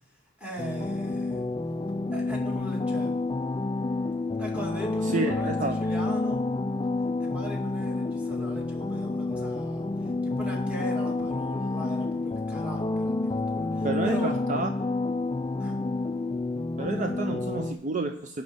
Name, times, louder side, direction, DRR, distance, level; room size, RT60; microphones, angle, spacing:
voice 1, 0.4-1.4 2.1-3.2 4.4-6.4 7.2-14.3 15.6-15.8, right 1 dB, 5° right, -1 dB, 2.3 m, -40 dB
sound 1, 0.6-17.7, left 2 dB, 20° left, 0.3 m, -29 dB
voice 2, 5.1-5.8 13.8-14.7 16.8-18.4, right 3 dB, 40° right, 5 dB, 0.5 m, -30 dB
10.5 x 4.2 x 7.7 m, 0.76 s
head